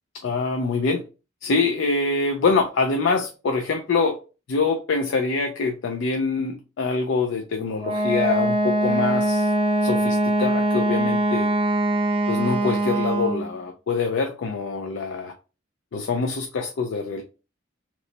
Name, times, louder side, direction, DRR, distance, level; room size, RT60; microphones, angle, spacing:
voice 1, 0.2-1.0 1.4-4.2 4.5-9.5 9.8-11.5 12.3-15.3 15.9-17.2, left 4 dB, 65° left, 4 dB, 0.4 m, -25 dB
Wind instrument woodwind instrument, 7.8-13.5, right 1 dB, 25° right, 0.3 m, -22 dB
2.9 x 2.1 x 3.8 m, 0.33 s
head